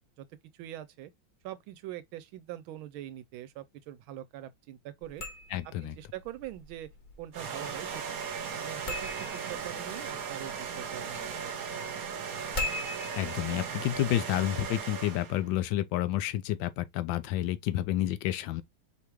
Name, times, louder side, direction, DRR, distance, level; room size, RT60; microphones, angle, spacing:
voice 1, 0.5-1.1 1.4-5.2 5.6-6.9 7.2-12.1, right 13 dB, 80° right, 1.4 m, -44 dB
sound 1, 5.0-14.8, left 2 dB, 40° left, 0.7 m, -43 dB
voice 2, 5.5-5.9 13.2-18.6, left 13 dB, 75° left, 1.3 m, -30 dB
sound 2, 7.3-15.5, right 6 dB, 55° right, 1.1 m, -37 dB
5.1 x 3.4 x 3.0 m
omnidirectional pair, 2.2 m